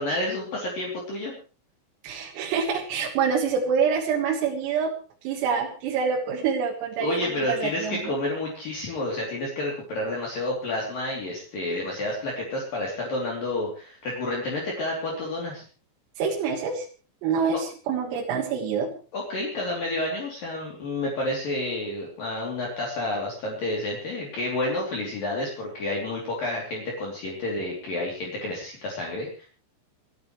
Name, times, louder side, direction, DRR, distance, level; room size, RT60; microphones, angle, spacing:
voice 1, 0.0-1.3 7.0-15.6 19.1-29.5, left 1 dB, 45° left, -2 dB, 4.3 m, -30 dB
voice 2, 2.0-4.9 5.2-8.1 16.2-16.9 17.2-18.9, right 6 dB, 85° right, 0 dB, 4.4 m, -26 dB
28.5 x 11.0 x 3.2 m, 0.38 s
omnidirectional pair, 5.9 m